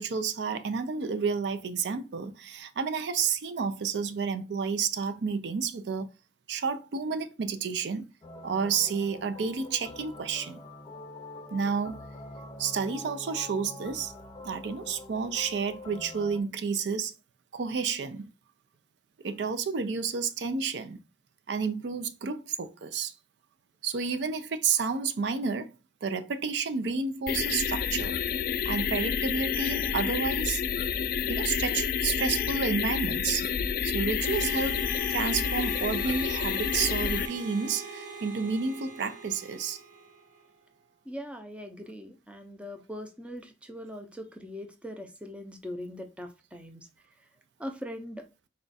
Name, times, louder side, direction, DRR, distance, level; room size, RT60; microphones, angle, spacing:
voice 1, 0.0-6.1 6.5-8.1 8.4-10.6 11.5-12.0 12.6-14.1 14.4-17.1 17.5-18.3 19.2-21.0 21.5-23.1 23.8-25.7 26.0-28.2 28.6-30.6 31.3-33.5 33.8-39.8, right 5 dB, 70° right, 0.4 m, -30 dB
sound 1, 8.2-16.4, left 2 dB, 25° left, 0.7 m, -45 dB
sound 2, 27.3-37.3, left 7 dB, 55° left, 0.3 m, -29 dB
Harmonica, 34.2-40.5, right 4 dB, 45° right, 1.1 m, -43 dB
voice 2, 41.1-46.9 47.6-48.2, equal, 5° right, 0.5 m, -41 dB
4.2 x 2.3 x 4.0 m
head